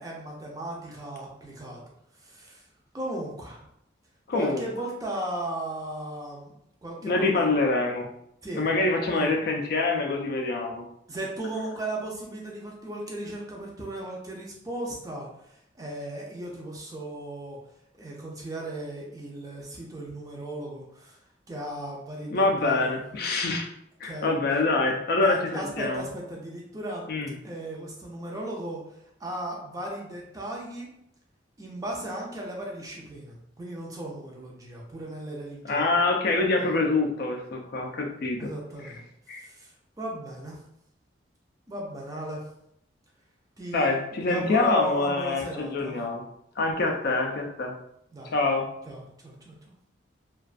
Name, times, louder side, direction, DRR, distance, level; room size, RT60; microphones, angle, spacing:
voice 1, 0.0-1.8 2.2-2.6 2.9-3.7 4.3-6.5 6.8-7.3 8.4-8.6 9.1-9.3 11.1-17.6 18.0-21.2 21.5-23.0 24.0-24.3 25.2-27.1 27.4-28.8 29.2-30.9 31.6-35.9 36.6-36.8 38.4-39.0 39.4-39.7 40.0-40.6 41.7-42.4 43.6-46.0 48.1-48.3 48.9-49.8, right 1 dB, 20° right, -2 dB, 0.4 m, -36 dB
voice 2, 4.3-4.7 7.0-8.1 8.5-10.8 22.3-23.7 24.0-26.1 27.1-27.3 35.7-38.5 39.3-39.4 43.7-46.2 46.6-47.7 48.3-48.7, left 3 dB, 55° left, 2 dB, 0.3 m, -25 dB
2.4 x 2.2 x 2.4 m, 0.76 s
head